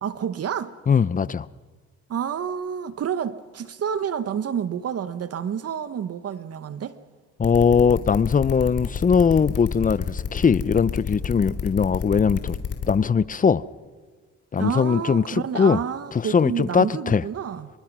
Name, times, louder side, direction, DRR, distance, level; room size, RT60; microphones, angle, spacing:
voice 1, 0.0-0.7 2.1-7.0 14.6-17.7, right 8 dB, 55° right, 1.0 m, -29 dB
voice 2, 0.9-1.5 7.4-12.6 12.9-13.6 14.5-15.8 16.1-17.2, left 6 dB, 25° left, 0.6 m, -20 dB
sound 1, 7.4-12.9, left 6 dB, 50° left, 3.3 m, -29 dB
26.0 x 23.5 x 6.1 m
cardioid pair, 90°, 30 cm